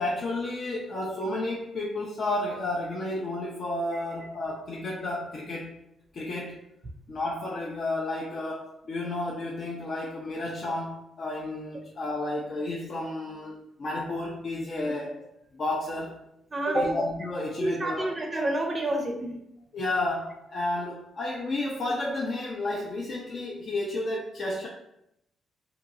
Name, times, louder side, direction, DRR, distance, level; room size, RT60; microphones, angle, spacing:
voice 1, 0.0-5.8 6.1-6.6 7.1-15.2 15.5-16.2 16.7-18.2 19.7-24.7, left 2 dB, 50° left, -3 dB, 0.5 m, -32 dB
voice 2, 16.5-16.9 17.6-19.4, right 1 dB, 30° right, 3 dB, 0.5 m, -28 dB
2.9 x 2.7 x 2.5 m, 0.81 s
cardioid pair, 90°, 0 cm